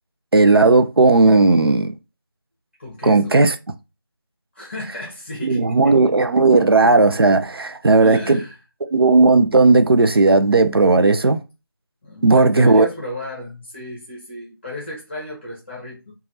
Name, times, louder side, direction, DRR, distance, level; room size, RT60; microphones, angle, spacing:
voice 1, 0.3-2.0 3.0-3.5 5.4-8.4 8.9-11.4 12.2-12.9, right 3 dB, 75° right, 0.4 m, -14 dB
voice 2, 2.8-3.4 4.5-6.1 8.0-8.6 12.0-16.1, left 2 dB, 30° left, 0.9 m, -34 dB
3.3 x 2.3 x 2.6 m
figure-of-eight pair, 170°, 12 cm